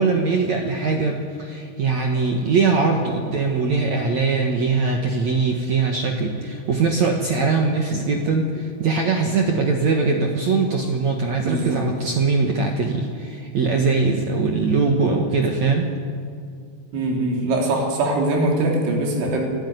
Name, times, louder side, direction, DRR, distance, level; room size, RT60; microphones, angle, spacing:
voice 1, 0.0-15.8, right 4 dB, 60° right, 2 dB, 1.9 m, -21 dB
voice 2, 11.4-11.8 16.9-19.5, right 2 dB, 85° right, 0 dB, 5.7 m, -22 dB
28.5 x 12.0 x 9.5 m, 2.3 s
omnidirectional pair, 5.2 m